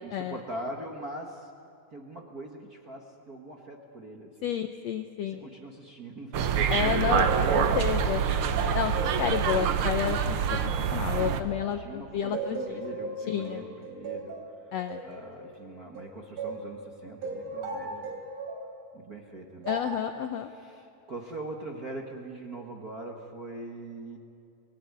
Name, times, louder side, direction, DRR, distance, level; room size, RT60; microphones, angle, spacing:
voice 1, 0.0-1.5 1.9-4.5 5.2-6.4 11.2-11.5 11.8-14.3 14.6-14.7 15.0-18.2 18.9-19.7 20.5-24.2, right 2 dB, 40° right, 1 dB, 1.4 m, -42 dB
voice 2, 4.4-5.5 6.7-8.2 8.7-10.6 10.9-12.6 13.3-13.6 14.7-15.0 19.7-20.5, left 9 dB, 75° left, 8 dB, 1.6 m, -30 dB
sound 1, 6.3-11.4, right 7 dB, 80° right, 1.2 m, -26 dB
sound 2, 6.9-11.9 12.3-16.7 17.2-18.7 19.6-20.1, right 3 dB, 60° right, 4.5 m, -37 dB
25.5 x 19.5 x 9.6 m, 2.6 s
omnidirectional pair, 4.0 m